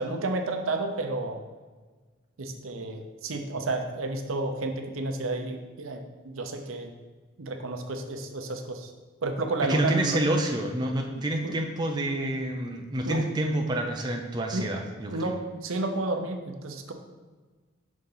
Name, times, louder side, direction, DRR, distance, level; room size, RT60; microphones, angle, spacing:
voice 1, 0.0-1.4 2.4-6.9 7.4-8.9 9.2-10.2 11.4-11.5 13.0-13.3 14.5-14.7 15.1-16.9, right 2 dB, 75° right, 4 dB, 0.7 m, -31 dB
voice 2, 9.6-15.3, right 1 dB, 20° right, 1 dB, 0.5 m, -28 dB
6.2 x 3.9 x 5.5 m, 1.4 s
head